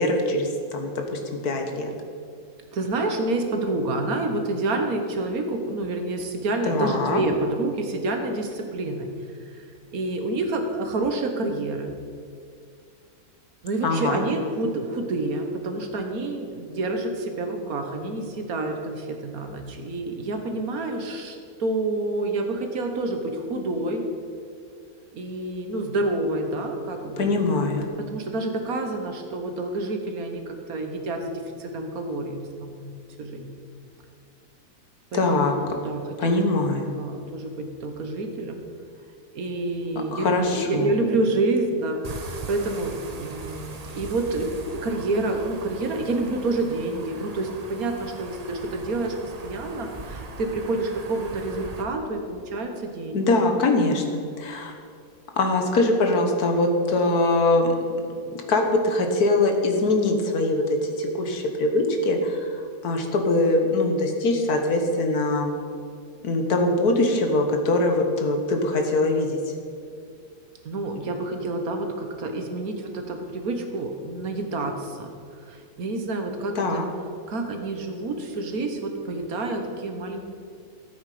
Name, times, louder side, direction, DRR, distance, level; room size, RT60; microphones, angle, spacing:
voice 1, 0.0-1.9 6.7-7.2 13.8-14.2 27.2-27.8 35.1-35.6 36.2-36.9 40.1-40.9 53.1-54.7 55.4-57.7 58.3-65.5 66.2-69.4 76.6-76.9, left 2 dB, 80° left, 4 dB, 1.8 m, -23 dB
voice 2, 2.7-9.1 9.5-9.7 9.9-11.9 13.6-24.0 25.1-27.4 28.0-31.3 31.6-32.9 33.2-33.5 35.1-36.5 36.9-38.6 39.3-53.2 70.7-75.1 75.5-76.8 77.3-80.2, right 2 dB, 70° right, 4 dB, 1.7 m, -28 dB
sound 1, 42.0-51.8, right 3 dB, 35° right, 0.7 m, -40 dB
14.0 x 8.2 x 5.0 m, 2.3 s
omnidirectional pair, 1.6 m